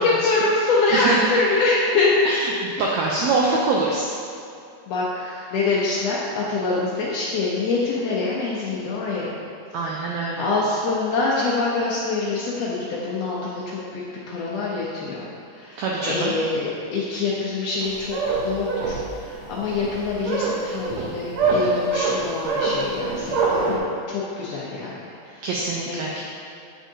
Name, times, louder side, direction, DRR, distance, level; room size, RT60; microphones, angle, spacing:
voice 1, 0.0-2.2 4.9-9.3 10.0-15.3 15.5-23.8 24.1-25.0 25.3-25.5 25.9-26.0, left 3 dB, 75° left, -6 dB, 1.5 m, -25 dB
voice 2, 0.9-1.3 2.2-4.1 9.7-10.5 15.8-16.3 25.4-26.2, right 3 dB, 85° right, -3 dB, 1.5 m, -24 dB
sound 1, 17.8-23.8, right 3 dB, 65° right, 1.8 m, -24 dB
7.6 x 6.3 x 2.7 m, 2.5 s
omnidirectional pair, 3.8 m